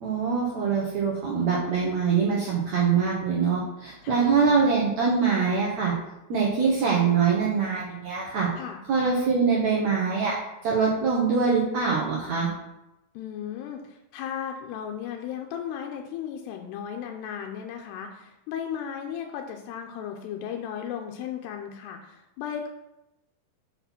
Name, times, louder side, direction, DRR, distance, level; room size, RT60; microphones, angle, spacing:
voice 1, 0.0-5.9 6.3-8.5 8.9-10.4 10.6-12.5, right 5 dB, 65° right, -4 dB, 1.8 m, -24 dB
voice 2, 4.0-4.6 8.6-8.8 13.2-22.7, left 8 dB, 90° left, 2 dB, 2.8 m, -35 dB
6.5 x 5.9 x 5.8 m, 0.90 s
omnidirectional pair, 4.7 m